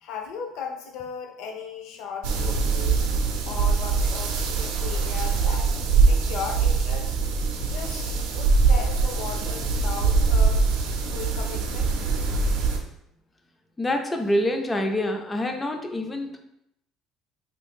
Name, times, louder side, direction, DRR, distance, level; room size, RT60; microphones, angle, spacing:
voice 1, 0.0-3.0 3.4-5.7 6.1-7.2 7.6-10.6 11.1-12.0, left 6 dB, 60° left, 3 dB, 0.6 m, -36 dB
sound 1, 2.2-12.8, right 4 dB, 85° right, 0.5 m, -23 dB
voice 2, 13.8-16.4, left 1 dB, 10° left, 4 dB, 0.3 m, -26 dB
3.1 x 2.6 x 3.5 m, 0.79 s
cardioid pair, 180°, 0 cm